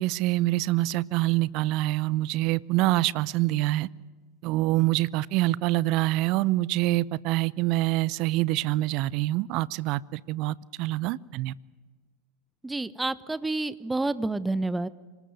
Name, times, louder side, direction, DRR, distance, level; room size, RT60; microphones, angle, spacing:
voice 1, 0.0-3.9 4.4-11.5, right 17 dB, 50° right, 23 dB, 0.7 m, -25 dB
voice 2, 12.6-14.9, right 2 dB, 10° right, 17 dB, 1.1 m, -29 dB
26.0 x 19.0 x 9.2 m, 1.4 s
figure-of-eight pair, 85°, 0 cm